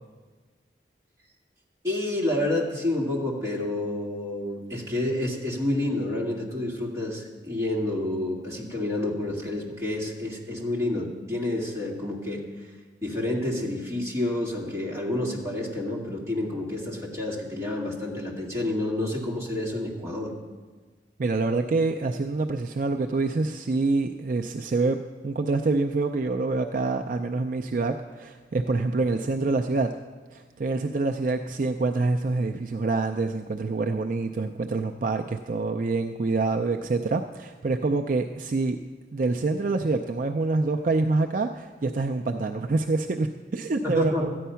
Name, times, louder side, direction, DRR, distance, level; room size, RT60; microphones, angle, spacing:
voice 1, 1.8-12.7 13.0-20.3 43.8-44.3, left 1 dB, 15° right, -4 dB, 2.1 m, -29 dB
voice 2, 21.2-29.9 30.3-38.8 39.1-44.3, right 3 dB, 50° right, 4 dB, 0.4 m, -26 dB
13.5 x 9.3 x 5.7 m, 1.4 s
head